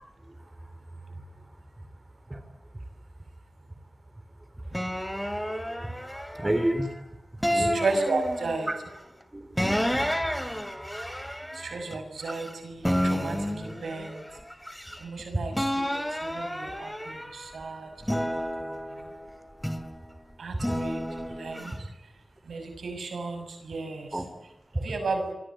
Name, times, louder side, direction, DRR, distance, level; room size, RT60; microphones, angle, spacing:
sound 1, 4.7-6.9 7.4-8.8 9.6-12.5 12.8-15.2 15.5-17.5 18.0-20.0 20.6-21.7, equal, 5° left, 3.0 m, -31 dB
voice 1, 6.4-6.9 7.5-7.8 8.7-8.8 9.3-10.1 15.3-15.4 24.1-24.3, right 1 dB, 20° right, 9 dB, 4.0 m, -29 dB
voice 2, 7.5-8.7 11.5-14.2 15.0-17.9 18.2-19.1 20.4-21.0 21.4-21.9 22.5-24.2 24.8-25.3, right 3 dB, 90° right, 6 dB, 6.3 m, -34 dB
28.5 x 23.5 x 8.1 m, 0.90 s
wide cardioid pair, 75°, 0 cm